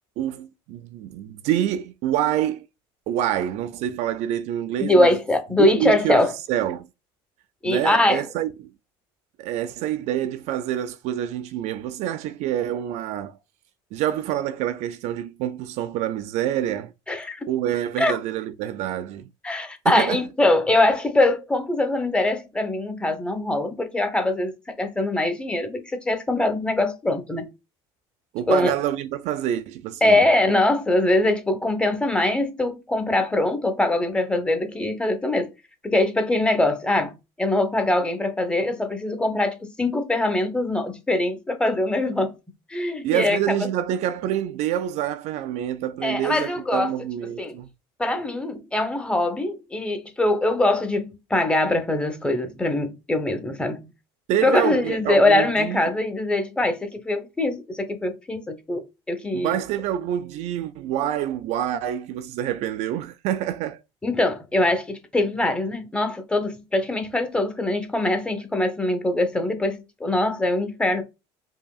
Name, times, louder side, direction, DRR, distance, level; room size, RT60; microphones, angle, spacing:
voice 1, 0.2-2.7 3.1-5.2 5.6-6.9 7.6-8.7 9.4-13.4 13.9-16.9 17.5-19.3 19.8-20.2 28.3-30.3 43.0-47.7 54.3-55.9 59.3-63.8, right 11 dB, 65° right, 0.4 m, -27 dB
voice 2, 4.8-6.3 7.6-8.2 17.1-17.4 18.0-18.2 19.4-27.5 28.5-28.7 30.0-35.5 35.8-42.4 42.7-43.7 46.0-46.9 47.4-47.6 48.0-53.9 54.4-58.8 59.1-59.6 64.0-71.0, left 2 dB, 10° left, 0.9 m, -22 dB
5.0 x 2.6 x 2.4 m
supercardioid pair, 105°, 12 cm